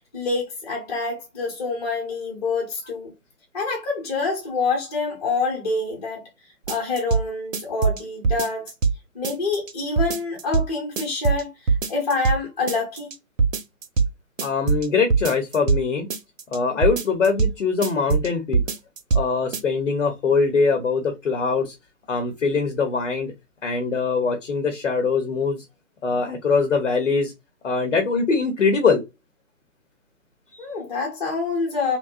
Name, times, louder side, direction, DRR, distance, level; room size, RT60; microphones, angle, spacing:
voice 1, 0.1-3.1 3.5-6.3 6.7-8.7 9.1-13.1 30.6-32.0, left 3 dB, 25° left, 0.8 m, -26 dB
sound 1, 6.7-7.2 7.5-9.0 9.2-9.7 10.0-10.7 11.0-11.4 11.7-12.4 12.7-13.1 13.4-14.1 14.4-15.8 16.1-16.6 16.8-17.5 17.8-18.3 18.5-19.2 19.5-19.6, right 5 dB, 65° right, 0.6 m, -21 dB
voice 2, 14.4-16.1 16.5-18.6 19.1-21.7 22.1-23.3 23.6-25.6 26.0-27.3 27.6-29.0 30.5-30.6, left 4 dB, 55° left, 0.8 m, -22 dB
2.7 x 2.1 x 2.4 m
figure-of-eight pair, 140°, 43 cm